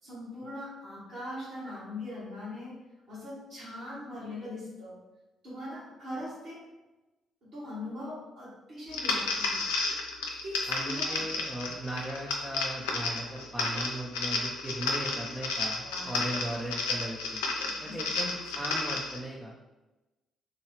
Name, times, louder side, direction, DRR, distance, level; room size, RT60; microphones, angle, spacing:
voice 1, 0.0-5.0 5.4-6.7 7.4-9.7 10.3-11.5 15.8-16.4 17.6-18.5, left 1 dB, 55° right, -11 dB, 1.4 m, -41 dB
sound 1, 8.9-19.2, left 3 dB, 70° left, 0.4 m, -32 dB
voice 2, 10.7-17.4 17.8-19.6, right 1 dB, 10° right, -2 dB, 0.5 m, -38 dB
3.6 x 2.3 x 3.3 m, 1.1 s
figure-of-eight pair, 45°, 0 cm